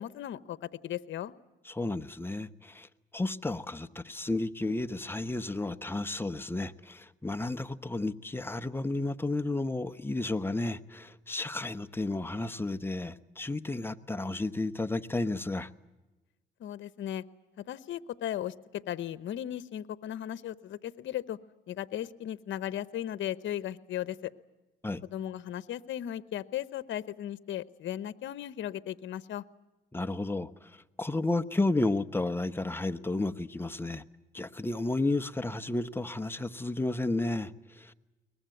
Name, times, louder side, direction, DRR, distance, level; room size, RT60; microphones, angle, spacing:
voice 1, 0.0-1.3 16.6-17.2 17.6-21.4 21.7-24.3 25.1-29.4, left 11 dB, 70° left, 0.9 m, -36 dB
voice 2, 1.7-2.9 3.1-15.7 24.8-25.0 29.9-34.0 34.3-37.9, left 2 dB, 10° left, 1.0 m, -32 dB
22.5 x 20.0 x 9.2 m
cardioid pair, 90°, 20 cm